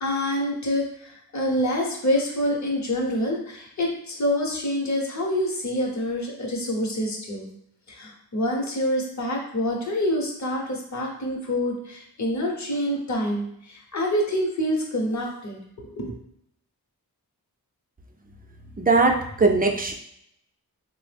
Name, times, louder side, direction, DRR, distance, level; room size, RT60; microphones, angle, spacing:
voice 1, 0.0-7.5 7.9-16.1, equal, 45° left, 0 dB, 0.8 m, -26 dB
voice 2, 18.8-19.9, right 3 dB, 25° right, 2 dB, 0.5 m, -20 dB
3.3 x 2.0 x 3.3 m, 0.73 s
cardioid pair, 45°, 38 cm